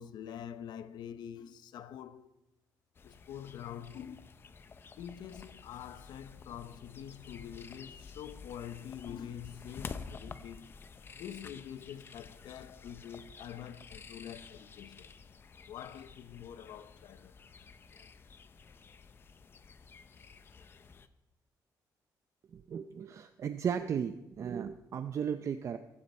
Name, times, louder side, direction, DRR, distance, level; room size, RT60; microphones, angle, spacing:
voice 1, 0.0-2.3 3.0-4.3 5.0-10.7 11.1-15.1 15.7-17.4, left 9 dB, 80° left, 0.8 m, -46 dB
sound 1, 3.0-21.1, left 5 dB, 30° left, 0.7 m, -51 dB
voice 2, 22.5-25.8, right 7 dB, 45° right, 0.6 m, -35 dB
18.0 x 16.0 x 4.4 m
cardioid pair, 175°, 7 cm